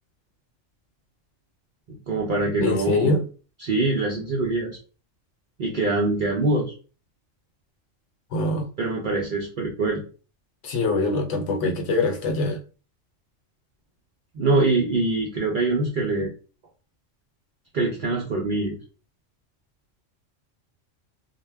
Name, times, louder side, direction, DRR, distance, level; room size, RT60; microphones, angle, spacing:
voice 1, 1.9-3.1 3.6-4.8 5.6-6.7 8.8-10.0 14.3-16.3 17.7-18.8, right 2 dB, 65° right, 0.5 m, -24 dB
voice 2, 2.6-3.2 8.3-8.7 10.6-12.6, left 2 dB, 70° left, 0.9 m, -23 dB
2.1 x 2.1 x 3.3 m
omnidirectional pair, 1.3 m